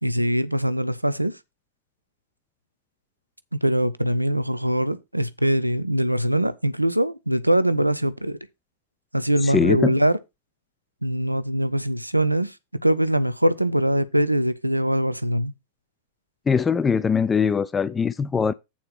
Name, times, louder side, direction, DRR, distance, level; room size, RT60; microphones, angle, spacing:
voice 1, 0.0-1.3 3.5-8.4 9.1-10.2 11.0-12.5 12.8-15.5, right 1 dB, 90° right, 0.6 m, -22 dB
voice 2, 9.4-9.9 16.5-18.5, left 6 dB, 15° left, 0.5 m, -21 dB
8.7 x 4.3 x 5.8 m
figure-of-eight pair, 90°, 0 cm